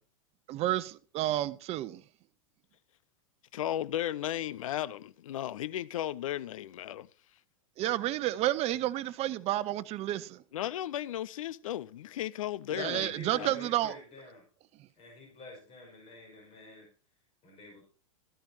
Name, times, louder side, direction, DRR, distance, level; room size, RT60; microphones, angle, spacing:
voice 1, 0.5-2.0 7.8-10.4 12.7-13.9, right 14 dB, 35° right, 0.9 m, -31 dB
voice 2, 3.5-7.1 10.5-13.6, left 12 dB, 70° left, 0.5 m, -35 dB
voice 3, 12.7-14.4 15.0-16.9 17.4-17.8, left 2 dB, 35° left, 5.9 m, -47 dB
13.5 x 11.5 x 2.8 m
hypercardioid pair, 105°, 18 cm